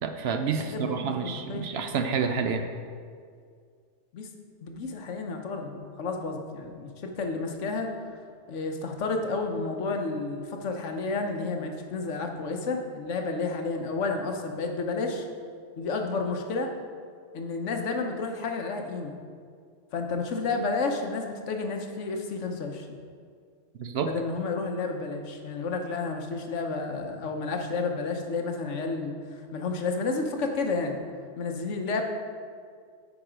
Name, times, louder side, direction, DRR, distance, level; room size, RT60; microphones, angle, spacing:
voice 1, 0.0-2.6 23.8-24.1, right 6 dB, 65° right, 7 dB, 0.7 m, -29 dB
voice 2, 0.6-1.7 4.1-4.3 4.6-7.9 8.5-15.3 15.8-16.7 17.3-19.1 19.9-23.0 24.0-31.0 31.4-32.0, left 3 dB, 75° left, 4 dB, 1.1 m, -31 dB
8.9 x 4.7 x 5.0 m, 2.1 s
omnidirectional pair, 1.3 m